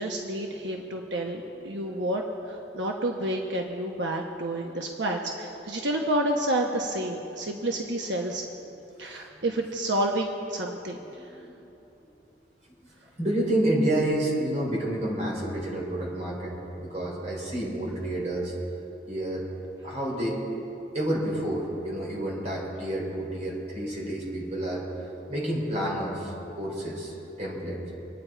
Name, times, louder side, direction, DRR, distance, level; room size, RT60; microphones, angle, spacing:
voice 1, 0.0-8.4 9.0-11.3, right 1 dB, 85° right, 1 dB, 1.1 m, -29 dB
voice 2, 11.2-11.5 13.2-18.5 19.1-19.5 19.8-20.4 20.9-27.8, right 1 dB, 40° right, -4 dB, 4.1 m, -29 dB
26.0 x 9.6 x 4.5 m, 2.9 s
head